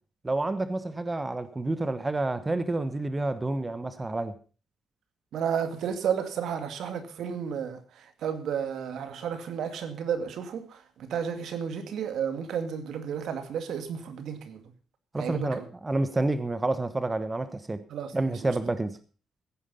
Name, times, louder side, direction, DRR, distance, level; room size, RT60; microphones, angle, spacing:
voice 1, 0.2-4.3 15.1-17.8 18.1-19.0, right 2 dB, 20° right, 1.1 m, -29 dB
voice 2, 5.3-7.8 8.2-14.6 15.2-15.7 17.9-18.5, right 7 dB, 70° right, 2.2 m, -32 dB
16.0 x 9.7 x 5.5 m
cardioid pair, 90°, 0 cm